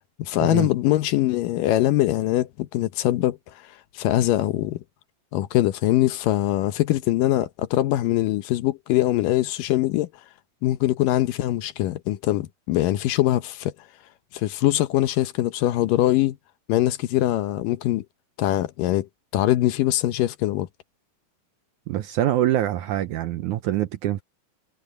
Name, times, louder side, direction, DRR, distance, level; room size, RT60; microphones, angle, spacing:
voice 1, 0.2-3.4 3.9-4.8 5.3-10.1 10.6-13.7 14.3-16.4 16.7-18.1 18.4-19.1 19.3-20.7, left 15 dB, 75° left, 2.3 m, -22 dB
voice 2, 21.9-24.2, right 13 dB, 75° right, 1.9 m, -24 dB
omnidirectional pair, 4.2 m